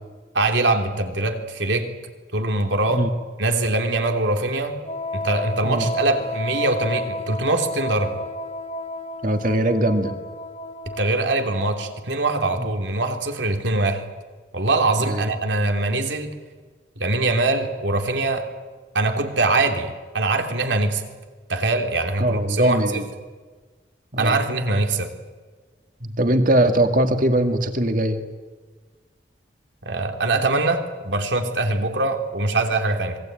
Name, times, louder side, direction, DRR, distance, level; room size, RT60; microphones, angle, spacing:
voice 1, 0.3-1.9 2.3-3.1 3.4-4.8 5.1-8.2 11.0-14.0 14.5-16.3 17.0-18.5 18.9-21.0 21.5-22.8 24.2-25.1 29.8-33.2, right 2 dB, 80° right, 5 dB, 3.0 m, -23 dB
Wind instrument woodwind instrument, 4.8-12.2, left 2 dB, 35° left, 1.0 m, -32 dB
voice 2, 9.2-10.1 12.6-12.7 15.0-15.3 22.2-23.0 24.1-24.4 26.0-28.2, right 1 dB, 50° right, 7 dB, 2.2 m, -21 dB
26.5 x 21.0 x 9.1 m, 1.4 s
head